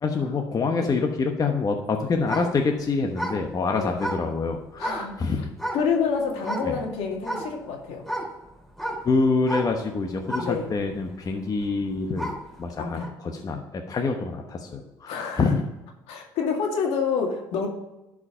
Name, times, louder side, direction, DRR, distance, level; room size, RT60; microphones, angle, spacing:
voice 1, 0.0-5.5 6.6-6.8 9.0-15.6, left 4 dB, 35° left, 3 dB, 1.1 m, -26 dB
sound 1, 2.2-5.1 5.6-6.1 6.4-6.8 7.2-12.5 13.0-13.1, right 1 dB, 5° left, 3.6 m, -33 dB
voice 2, 4.8-5.2 5.7-8.0 10.4-10.7 12.8-13.1 15.1-15.5 16.1-17.7, left 6 dB, 70° left, 1 dB, 2.1 m, -28 dB
11.0 x 4.9 x 5.0 m, 0.99 s
supercardioid pair, 70°, 10 cm